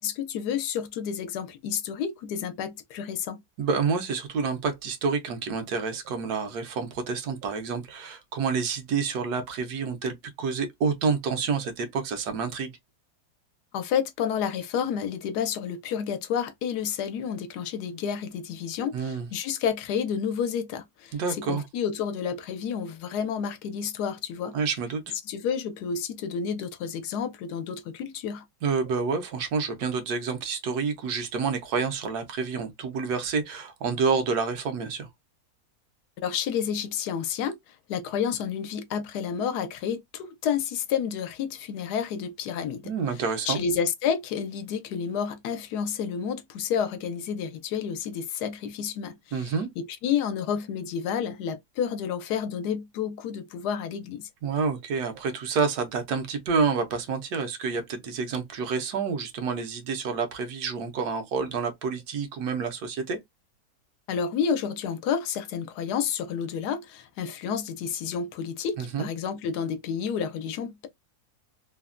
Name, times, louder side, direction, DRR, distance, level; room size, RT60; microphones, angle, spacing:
voice 1, 0.0-3.4 13.7-24.6 25.3-28.4 36.2-37.6 37.9-42.9 43.4-54.3 64.1-70.9, left 7 dB, 85° left, 1.2 m, -30 dB
voice 2, 3.6-12.7 18.9-19.3 21.1-21.7 24.5-25.1 28.6-35.1 42.8-43.6 49.3-49.7 54.4-63.2 68.8-69.1, right 5 dB, 75° right, 1.2 m, -28 dB
3.2 x 2.1 x 2.4 m
omnidirectional pair, 1.7 m